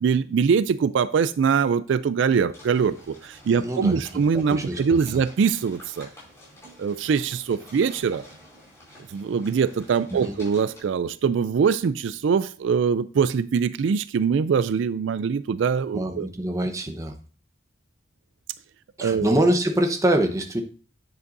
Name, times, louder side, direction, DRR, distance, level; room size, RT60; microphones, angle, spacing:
voice 1, 0.0-6.1 6.8-8.2 9.1-16.3 19.0-19.3, right 6 dB, 75° right, 14 dB, 0.3 m, -23 dB
sound 1, 2.5-10.8, equal, 15° left, 4.3 m, -49 dB
voice 2, 3.5-4.0 4.5-4.8 5.1-5.2 10.1-10.3 15.9-17.2 19.0-20.6, right 1 dB, 15° right, 4 dB, 0.9 m, -24 dB
9.7 x 7.8 x 2.6 m, 0.39 s
head